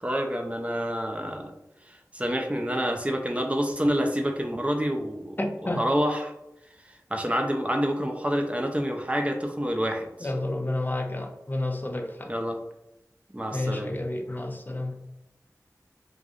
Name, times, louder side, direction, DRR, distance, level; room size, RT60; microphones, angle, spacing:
voice 1, 0.0-1.5 1.9-5.4 5.7-6.3 7.1-10.3 12.3-12.6 13.3-13.9, equal, 20° right, 3 dB, 0.6 m, -28 dB
voice 2, 5.4-5.9 10.2-12.3 13.5-15.0, left 1 dB, 30° left, 3 dB, 0.5 m, -30 dB
4.8 x 2.5 x 2.4 m, 0.86 s
wide cardioid pair, 60°, 6 cm